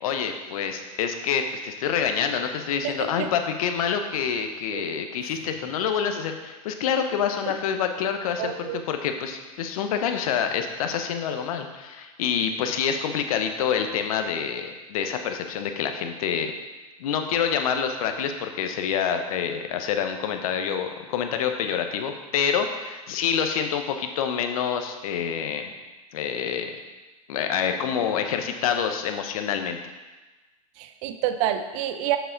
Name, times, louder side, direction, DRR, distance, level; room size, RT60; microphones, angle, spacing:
voice 1, 0.0-16.5 17.0-25.7 26.1-26.7 27.3-29.8, left 7 dB, 70° left, 6 dB, 0.9 m, -27 dB
voice 2, 8.4-8.8 30.8-32.2, right 11 dB, 55° right, 8 dB, 0.6 m, -28 dB
6.8 x 6.7 x 3.9 m, 1.2 s
hypercardioid pair, 95°, 19 cm